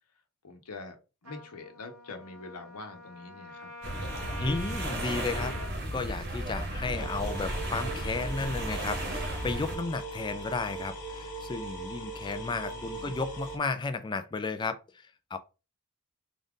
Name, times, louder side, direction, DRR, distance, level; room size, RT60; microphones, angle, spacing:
voice 1, 0.4-1.0 1.2-3.7 12.3-13.2, left 3 dB, 85° left, 0.9 m, -45 dB
Trumpet, 1.2-5.8, left 1 dB, 70° right, 0.9 m, -44 dB
sound 1, 3.8-9.8, right 1 dB, 45° right, 1.1 m, -34 dB
voice 2, 4.4-5.6 5.9-15.4, left 4 dB, 20° left, 0.3 m, -33 dB
sound 2, 6.9-13.6, right 2 dB, 35° left, 1.3 m, -40 dB
3.9 x 2.5 x 3.6 m
head